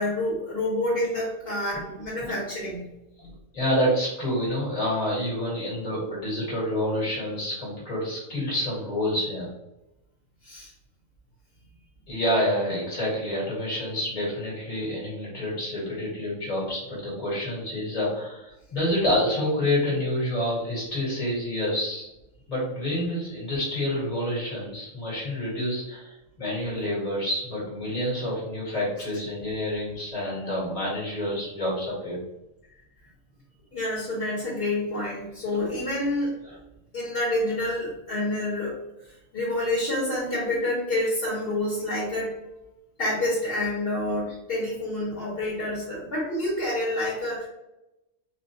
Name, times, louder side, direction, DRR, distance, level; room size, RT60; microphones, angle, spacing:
voice 1, 0.0-2.8 10.4-10.7 33.7-36.3 36.9-38.7 39.3-42.3 43.0-47.4, left 1 dB, 45° left, -8 dB, 1.2 m, -28 dB
voice 2, 3.2-9.5 12.1-22.1 22.5-32.2 36.5-36.6, left 1 dB, 30° left, -5 dB, 1.6 m, -28 dB
4.4 x 2.2 x 2.7 m, 0.92 s
omnidirectional pair, 1.4 m